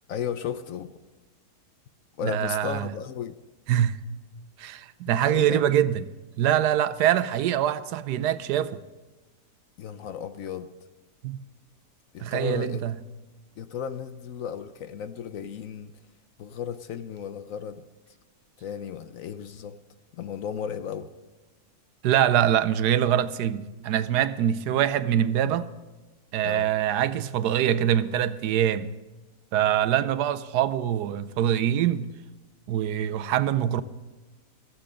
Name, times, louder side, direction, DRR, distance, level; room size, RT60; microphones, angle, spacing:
voice 1, 0.1-0.9 2.2-3.4 5.1-5.6 9.8-10.7 12.1-12.8 13.6-15.9 16.4-17.9 18.6-19.8 20.1-21.1 26.4-26.7, left 8 dB, 65° left, 0.9 m, -34 dB
voice 2, 2.2-2.9 3.7-4.1 4.6-6.1 6.4-8.8 11.2-11.4 12.2-12.9 22.0-25.7 26.3-28.9 29.5-32.1 32.7-33.8, right 10 dB, 80° right, 1.2 m, -24 dB
15.0 x 14.5 x 3.8 m
omnidirectional pair, 1.7 m